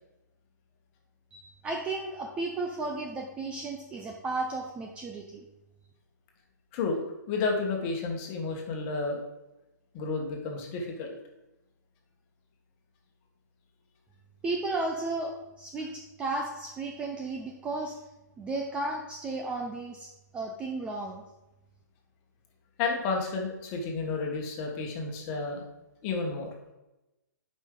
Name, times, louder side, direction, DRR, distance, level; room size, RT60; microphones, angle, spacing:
voice 1, 1.3-5.5 14.4-18.0 18.4-21.2, right 2 dB, 10° right, 1 dB, 0.5 m, -34 dB
voice 2, 7.3-9.2 9.9-11.2 22.8-25.6 26.0-26.5, left 4 dB, 30° left, 1 dB, 1.5 m, -31 dB
9.1 x 5.4 x 3.8 m, 0.99 s
hypercardioid pair, 155°, 10 cm